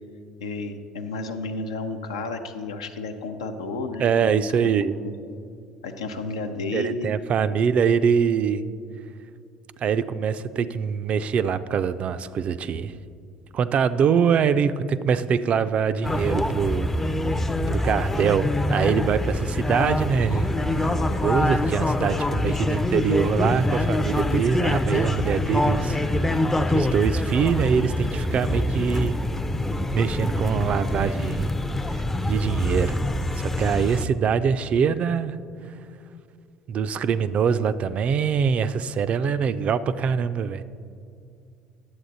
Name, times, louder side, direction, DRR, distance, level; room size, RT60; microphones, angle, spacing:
voice 1, 0.4-5.4 5.8-7.1, left 2 dB, 80° left, 6 dB, 0.6 m, -32 dB
voice 2, 4.0-5.0 6.7-8.6 9.8-12.9 13.5-16.9 17.7-20.5 21.2-26.4 26.7-29.2 29.9-31.5 31.9-33.0 33.4-35.4 36.7-40.6, right 7 dB, 45° right, 13 dB, 0.4 m, -23 dB
sound 1, 16.0-34.1, left 1 dB, 10° left, 0.5 m, -25 dB
10.5 x 7.6 x 4.0 m, 2.4 s
hypercardioid pair, 65°, 3 cm